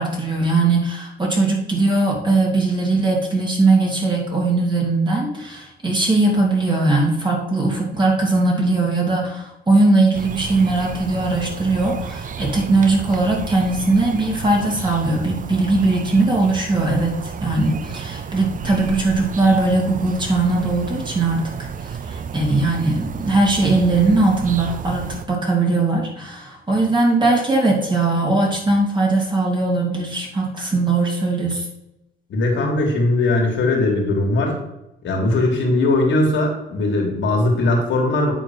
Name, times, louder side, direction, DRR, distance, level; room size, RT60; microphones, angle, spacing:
voice 1, 0.0-21.5 21.8-31.7, right 2 dB, 25° right, -2 dB, 2.9 m, -19 dB
sound 1, 10.1-25.3, right 7 dB, 40° right, 0.6 m, -32 dB
voice 2, 32.3-34.6 35.0-38.3, left 2 dB, 70° left, 0 dB, 2.6 m, -19 dB
9.1 x 3.9 x 6.1 m, 0.86 s
cardioid pair, 90°, 20 cm